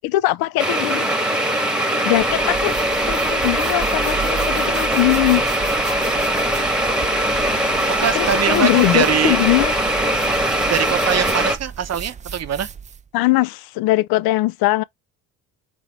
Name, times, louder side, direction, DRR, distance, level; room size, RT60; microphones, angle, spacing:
voice 1, 0.0-1.2 2.0-2.8 3.1-5.5 8.1-9.7 13.1-14.8, left 18 dB, 60° left, 0.5 m, -20 dB
sound 1, 0.6-11.6, right 1 dB, ahead, 1.2 m, -21 dB
sound 2, 2.1-13.1, right 7 dB, 20° right, 0.4 m, -34 dB
sound 3, 6.0-10.9, left 7 dB, 80° left, 1.2 m, -38 dB
voice 2, 7.9-9.4 10.7-12.7, right 9 dB, 35° right, 0.8 m, -23 dB
3.8 x 3.4 x 3.5 m
hypercardioid pair, 65°, 43 cm